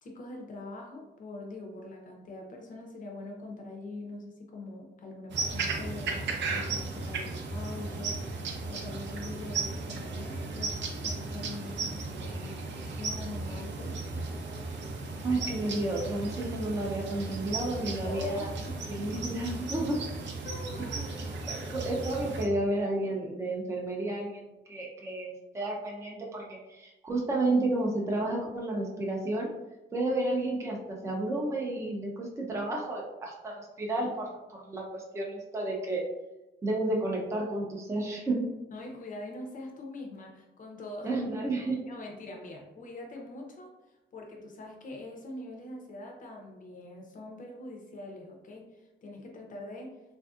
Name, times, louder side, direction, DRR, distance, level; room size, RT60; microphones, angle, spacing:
voice 1, 0.0-8.2 8.7-14.0 18.0-18.8 20.4-21.4 38.7-41.1 41.9-43.7 44.1-50.0, left 2 dB, 40° left, 1 dB, 0.6 m, -43 dB
sound 1, 5.3-22.4, right 3 dB, 65° right, 0.5 m, -35 dB
voice 2, 15.2-18.5 18.9-20.0 20.9-21.1 21.5-29.5 29.9-36.0 36.6-38.5 41.0-41.8, right 2 dB, 15° right, -2 dB, 0.5 m, -31 dB
3.4 x 2.6 x 2.3 m, 1.0 s
cardioid pair, 155°, 20 cm